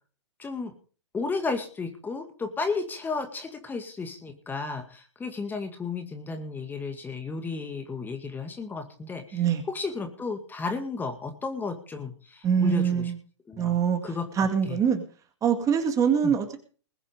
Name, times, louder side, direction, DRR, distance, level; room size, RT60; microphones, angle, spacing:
voice 1, 0.4-0.7 1.1-9.4 9.7-13.1 13.5-13.8 14.0-14.8 16.2-16.3, left 4 dB, 10° left, 6 dB, 2.1 m, -33 dB
voice 2, 9.3-9.6 12.4-13.2 13.6-14.0 14.4-15.0 15.4-16.6, right 7 dB, 20° right, 7 dB, 2.0 m, -23 dB
21.0 x 7.4 x 5.2 m, 0.40 s
hypercardioid pair, 120°, 15 cm